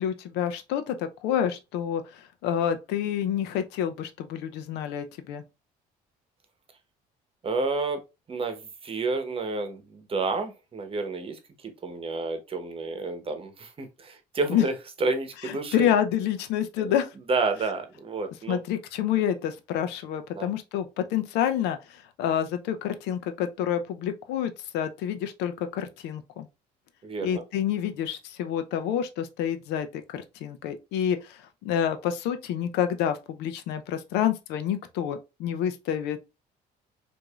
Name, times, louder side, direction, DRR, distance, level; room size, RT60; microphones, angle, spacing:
voice 1, 0.0-5.4 14.5-14.6 15.4-17.1 18.5-26.5 27.2-36.3, left 9 dB, 90° left, 0.5 m, -28 dB
voice 2, 7.4-8.0 8.3-15.9 16.8-16.9 17.3-18.6 20.3-20.5 27.0-27.4, right 3 dB, 35° right, 0.9 m, -30 dB
4.7 x 2.6 x 2.3 m
cardioid pair, 110°, 17 cm